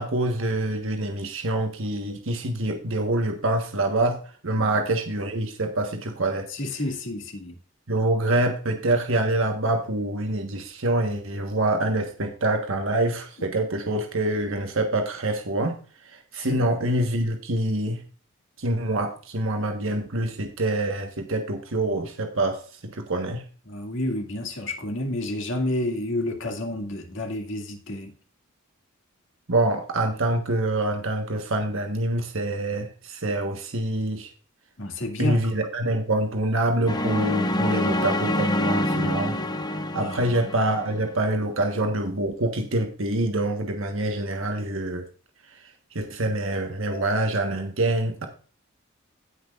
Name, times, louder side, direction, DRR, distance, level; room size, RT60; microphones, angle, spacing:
voice 1, 0.0-4.2 4.4-6.5 7.9-15.8 16.3-18.0 18.6-22.6 22.9-23.4 29.5-34.3 35.2-39.4 39.9-45.1 45.9-48.3, right 1 dB, 70° right, 1.4 m, -25 dB
voice 2, 6.5-7.5 16.5-16.6 23.7-28.1 34.8-35.5 40.0-40.2, left 1 dB, 65° left, 2.2 m, -30 dB
sound 1, 36.9-41.1, left 1 dB, 20° left, 0.9 m, -26 dB
17.5 x 5.9 x 2.5 m
head